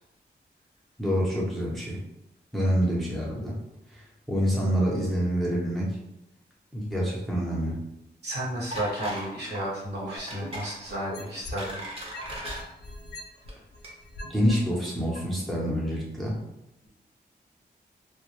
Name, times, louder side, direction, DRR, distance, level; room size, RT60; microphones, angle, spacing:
voice 1, 1.0-2.0 2.5-3.6 3.9-4.0 4.3-5.9 6.7-7.8 14.3-16.4, equal, ahead, -5 dB, 0.6 m, -26 dB
voice 2, 8.2-11.8, right 1 dB, 70° right, -6 dB, 1.1 m, -33 dB
sound 1, 8.7-9.3 9.5-9.7 10.3-10.7 11.3-12.6 13.3-13.5 13.8-13.9, equal, 35° right, 0.7 m, -37 dB
sound 2, 10.2-11.7 12.1-14.5 15.1-15.2, left 2 dB, 65° left, 0.5 m, -41 dB
2.1 x 2.0 x 2.9 m, 0.85 s
cardioid pair, 85°, 18 cm